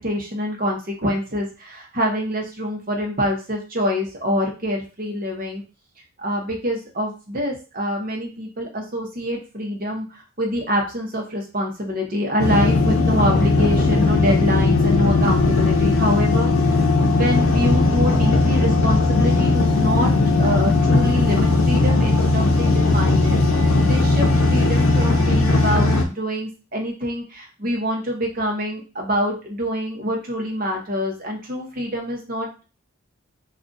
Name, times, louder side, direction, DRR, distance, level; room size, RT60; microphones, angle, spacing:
voice 1, 0.0-5.6 6.2-16.5 17.0-20.1 20.4-23.4 23.8-32.7, equal, 40° right, 1 dB, 0.8 m, -25 dB
sound 1, 12.4-26.0, left 3 dB, 85° left, 0.6 m, -18 dB
2.4 x 2.4 x 3.9 m, 0.33 s
head